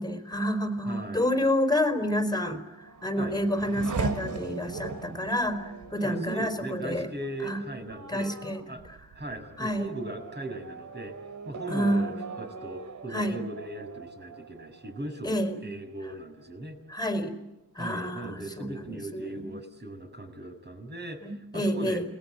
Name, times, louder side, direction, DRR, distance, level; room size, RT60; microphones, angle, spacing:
voice 1, 0.0-7.1 7.4-7.6 8.1-8.6 9.6-9.9 11.7-12.1 13.1-13.4 15.2-15.6 16.9-17.3 17.8-19.5 21.2-22.0, left 1 dB, 10° left, 7 dB, 4.5 m, -29 dB
voice 2, 0.8-1.4 3.2-3.3 6.0-8.3 8.7-8.8 9.1-11.1 11.4-16.8 17.8-22.0, right 2 dB, 25° right, 5 dB, 6.8 m, -38 dB
Race car auto racing / Accelerating revving vroom, 2.6-15.7 16.1-16.8, right 4 dB, 50° right, 2.7 m, -39 dB
29.0 x 20.0 x 8.9 m, 0.92 s
cardioid pair, 75°, 40 cm